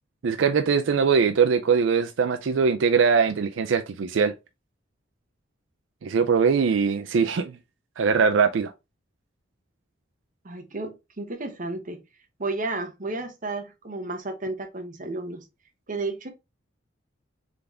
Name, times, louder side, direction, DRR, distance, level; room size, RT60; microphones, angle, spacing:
voice 1, 0.2-4.3 6.0-7.5 8.0-8.7, right 5 dB, 80° right, 0.4 m, -21 dB
voice 2, 10.4-12.0 12.4-15.4 15.9-16.3, right 2 dB, 45° right, 1.0 m, -32 dB
3.8 x 3.4 x 3.3 m
head